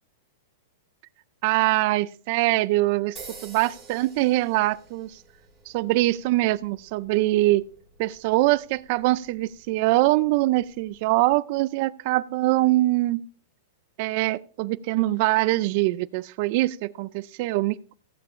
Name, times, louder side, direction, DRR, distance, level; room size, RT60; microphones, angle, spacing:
voice 1, 1.4-5.2 5.7-7.6 8.0-13.2 14.0-17.9, right 18 dB, 45° right, 0.3 m, -23 dB
sound 1, 3.2-11.3, right 4 dB, 5° right, 3.6 m, -50 dB
15.5 x 8.8 x 2.5 m
supercardioid pair, 160°, 0 cm